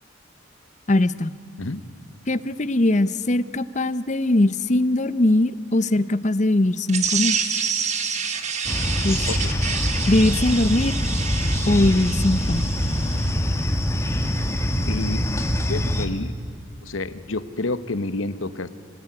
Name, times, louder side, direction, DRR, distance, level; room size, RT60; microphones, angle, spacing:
voice 1, 0.9-1.3 2.3-7.4 9.0-9.4 10.1-11.0 11.7-12.7, left 1 dB, 35° left, 16 dB, 0.7 m, -21 dB
sound 1, 6.9-13.3, right 6 dB, 35° right, 1.8 m, -28 dB
sound 2, 8.6-16.1, equal, 15° left, 1.7 m, -24 dB
voice 2, 14.9-15.3 15.7-16.3 16.8-18.7, left 2 dB, 90° left, 14 dB, 1.1 m, -29 dB
26.5 x 18.5 x 9.7 m, 2.4 s
head